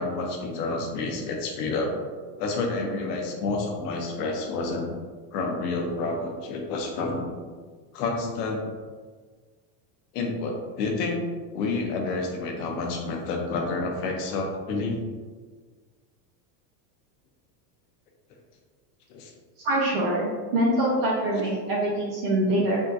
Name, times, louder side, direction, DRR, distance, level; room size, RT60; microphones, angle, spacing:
voice 1, 0.0-1.9 2.4-5.0 5.3-7.3 7.9-8.6 10.1-11.2 11.5-15.0 19.1-19.3, left 3 dB, 70° left, 2 dB, 0.8 m, -29 dB
voice 2, 19.6-22.8, right 1 dB, 40° right, -4 dB, 0.4 m, -24 dB
3.6 x 2.2 x 2.7 m, 1.5 s
supercardioid pair, 160°, 49 cm